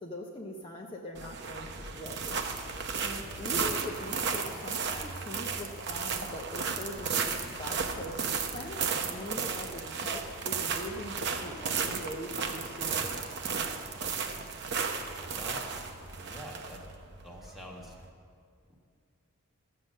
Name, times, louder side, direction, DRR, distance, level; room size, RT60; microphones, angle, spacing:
voice 1, 0.0-2.4 3.0-8.2 8.5-13.1, left 1 dB, 25° left, -1 dB, 0.8 m, -42 dB
sound 1, 1.2-18.1, right 5 dB, 50° right, 0.8 m, -34 dB
voice 2, 15.3-15.6 16.2-16.8 17.2-17.9 18.7-18.8, equal, ahead, -2 dB, 1.4 m, -45 dB
13.5 x 7.7 x 6.6 m, 2.3 s
head